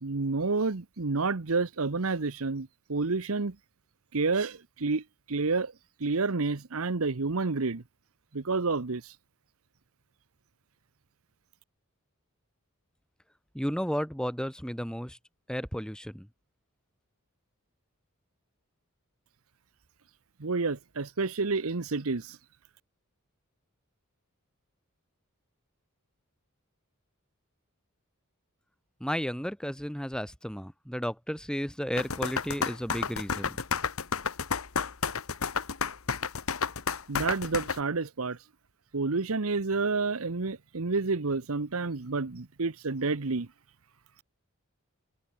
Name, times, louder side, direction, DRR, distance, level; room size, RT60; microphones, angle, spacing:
voice 1, 0.0-3.5 4.1-5.7 6.0-7.8 8.3-9.2 20.4-22.4 37.1-38.4 38.9-43.5, right 3 dB, 75° right, 1.0 m, -29 dB
voice 2, 13.5-15.2 15.5-16.3 29.0-33.6, equal, 5° left, 4.2 m, -33 dB
sound 1, 32.0-37.8, left 5 dB, 70° left, 1.3 m, -31 dB
head